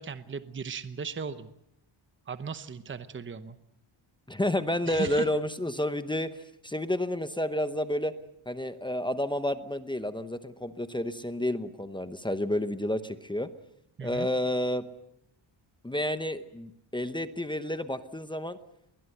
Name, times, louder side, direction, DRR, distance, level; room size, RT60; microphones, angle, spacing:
voice 1, 0.0-1.5 2.3-3.6 4.9-5.3 14.0-14.3, right 5 dB, 25° right, 12 dB, 0.9 m, -37 dB
voice 2, 4.3-8.1 8.5-13.5 14.0-14.9 15.8-18.6, left 1 dB, 10° left, 10 dB, 0.8 m, -30 dB
21.0 x 20.5 x 7.9 m, 0.78 s
wide cardioid pair, 160°, 47 cm